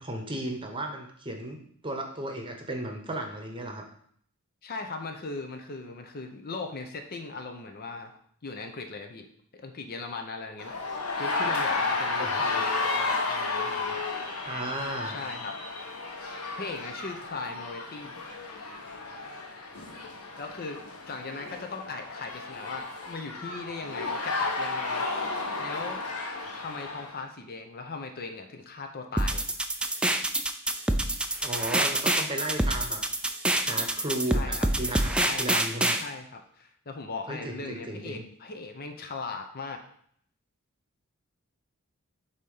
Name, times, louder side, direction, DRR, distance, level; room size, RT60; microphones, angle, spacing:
voice 1, 0.0-1.6 1.8-3.8 12.2-12.6 14.5-15.2 31.4-33.0 33.6-36.0 37.3-38.2, right 1 dB, 25° right, 3 dB, 0.9 m, -35 dB
voice 2, 4.6-8.1 8.4-9.3 9.5-10.8 11.2-14.0 15.0-15.6 16.5-18.2 20.4-25.1 25.6-26.0 26.5-29.4 34.3-34.7 35.1-35.6 36.0-39.8, left 3 dB, 45° left, 5 dB, 0.7 m, -38 dB
sound 1, 10.6-27.2, left 3 dB, 75° left, 1.2 m, -33 dB
sound 2, 29.2-36.0, right 1 dB, 5° right, 0.3 m, -26 dB
8.1 x 2.9 x 5.4 m, 0.64 s
head